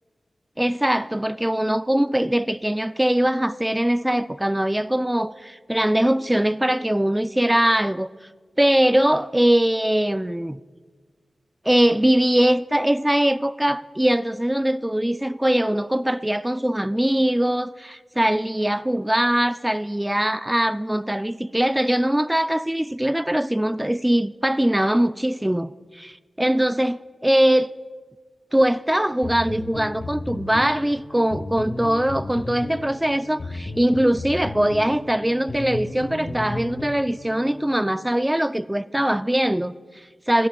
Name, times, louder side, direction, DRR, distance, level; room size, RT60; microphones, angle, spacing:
voice 1, 0.6-8.1 8.6-10.6 11.7-27.7 28.5-39.7 40.3-40.5, right 1 dB, 10° right, 0.3 m, -21 dB
sound 1, 29.2-37.7, left 2 dB, 80° left, 1.3 m, -34 dB
23.0 x 10.5 x 2.3 m
cardioid pair, 50°, 0 cm